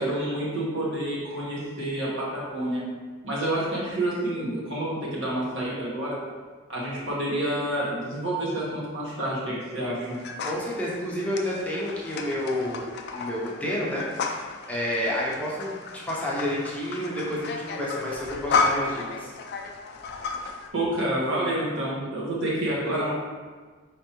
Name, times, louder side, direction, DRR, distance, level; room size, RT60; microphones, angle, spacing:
voice 1, 0.0-2.8 3.2-6.2 6.7-10.2 20.7-23.1, right 1 dB, 70° right, -7 dB, 1.4 m, -28 dB
sound 1, 10.0-20.7, left 4 dB, 55° left, 0.4 m, -32 dB
voice 2, 10.4-14.4 14.7-15.7 16.1-19.3, left 1 dB, 5° left, -6 dB, 0.6 m, -30 dB
4.4 x 3.3 x 3.0 m, 1.5 s
head